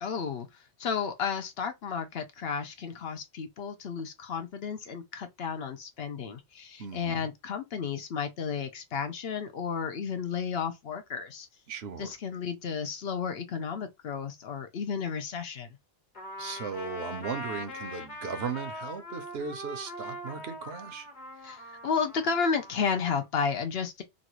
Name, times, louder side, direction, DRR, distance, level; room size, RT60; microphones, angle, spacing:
voice 1, 0.0-11.5 12.0-15.8 21.4-24.0, left 6 dB, 65° left, 0.9 m, -32 dB
voice 2, 6.8-7.2 11.7-12.1 16.4-21.1, right 5 dB, 70° right, 0.9 m, -37 dB
Trumpet, 16.1-23.3, left 1 dB, 45° left, 1.3 m, -42 dB
3.1 x 2.5 x 2.9 m
omnidirectional pair, 1.1 m